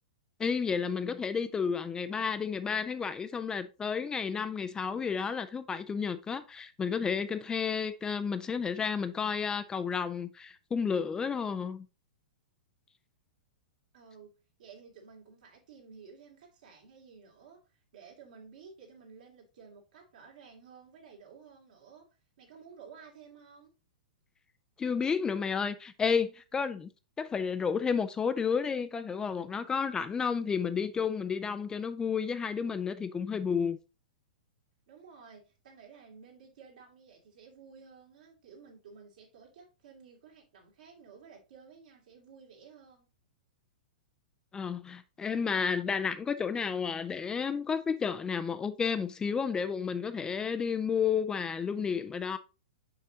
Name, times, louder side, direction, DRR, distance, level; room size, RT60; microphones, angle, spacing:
voice 1, 0.4-11.9 24.8-26.9 27.2-33.8 44.5-52.4, left 6 dB, 15° left, 0.4 m, -31 dB
voice 2, 13.9-14.3 14.6-23.7 34.9-43.1, right 5 dB, 70° right, 2.6 m, -54 dB
6.1 x 5.5 x 2.8 m
hypercardioid pair, 115°, 5 cm